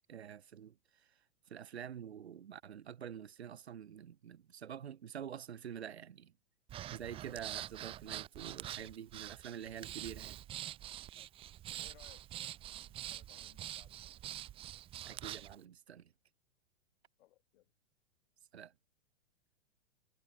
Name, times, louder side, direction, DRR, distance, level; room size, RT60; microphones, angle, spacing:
voice 1, 0.1-1.1 1.5-6.3 6.9-10.4 15.1-16.1 18.5-18.7, right 9 dB, 70° right, 2.1 m, -47 dB
Breathing, 6.7-15.6, right 12 dB, 15° right, 0.5 m, -45 dB
voice 2, 11.7-14.1 17.2-17.7, left 16 dB, 55° left, 4.6 m, -65 dB
figure-of-eight pair, 105°, 33 cm